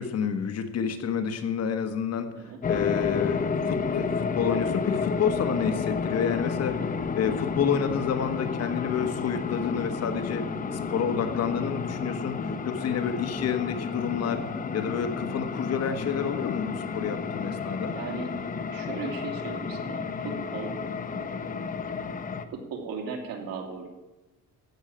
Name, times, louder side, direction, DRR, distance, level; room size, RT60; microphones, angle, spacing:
voice 1, 0.0-14.4 14.7-18.0, left 7 dB, 45° left, 8 dB, 1.3 m, -29 dB
sound 1, 2.6-22.5, left 5 dB, 25° left, 0.7 m, -31 dB
voice 2, 18.0-18.3 18.7-21.7 22.5-23.9, right 4 dB, 75° right, 2 dB, 2.8 m, -38 dB
14.5 x 6.4 x 8.7 m, 1.1 s
cardioid pair, 150°, 35 cm